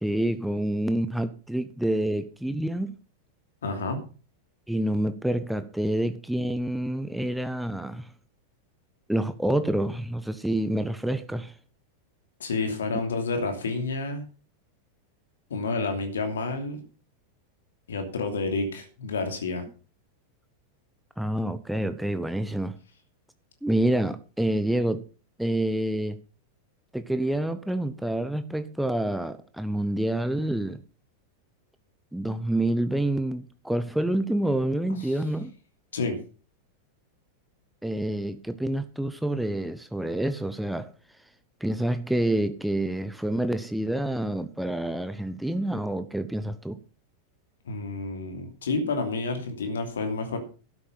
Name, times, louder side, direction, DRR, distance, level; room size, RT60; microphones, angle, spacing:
voice 1, 0.0-3.0 4.7-8.1 9.1-11.5 21.2-22.8 23.6-25.0 25.4-26.2 26.9-30.8 32.1-35.5 37.8-40.9 41.6-46.8, right 1 dB, ahead, 0.9 m, -27 dB
voice 2, 3.6-4.0 12.4-14.2 15.5-16.8 17.9-19.6 35.0-35.1 35.9-36.2 47.6-50.4, left 3 dB, 65° left, 2.8 m, -29 dB
12.5 x 9.8 x 5.7 m
figure-of-eight pair, 90°, 0 cm